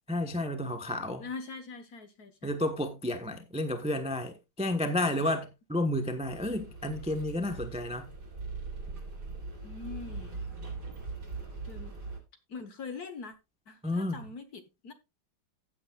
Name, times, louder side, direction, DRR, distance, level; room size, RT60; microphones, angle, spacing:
voice 1, 0.1-1.2 2.4-8.1 13.8-14.2, left 1 dB, 5° right, 0.7 m, -31 dB
voice 2, 1.2-2.6 5.0-5.3 9.6-10.4 11.6-11.9 12.5-13.3 13.7-14.9, left 4 dB, 50° left, 1.7 m, -43 dB
sound 1, 6.2-12.2, right 3 dB, 50° right, 3.8 m, -41 dB
15.0 x 8.2 x 2.4 m
omnidirectional pair, 2.2 m